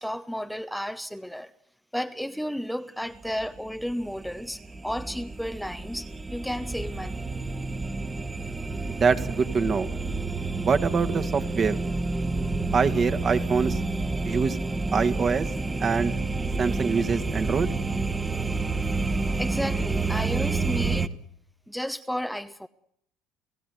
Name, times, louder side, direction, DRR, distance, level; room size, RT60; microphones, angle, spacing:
voice 1, 0.0-1.5 1.9-7.3 19.4-21.1 21.7-22.7, equal, ahead, 0.9 m, -33 dB
sound 1, 3.2-21.1, right 3 dB, 20° right, 1.5 m, -29 dB
voice 2, 8.9-9.9 10.6-11.8 12.7-13.8 14.2-14.6 14.9-15.5 15.8-16.1 16.6-17.7, right 5 dB, 40° right, 2.0 m, -24 dB
30.0 x 15.5 x 9.6 m
hypercardioid pair, 70°, 0 cm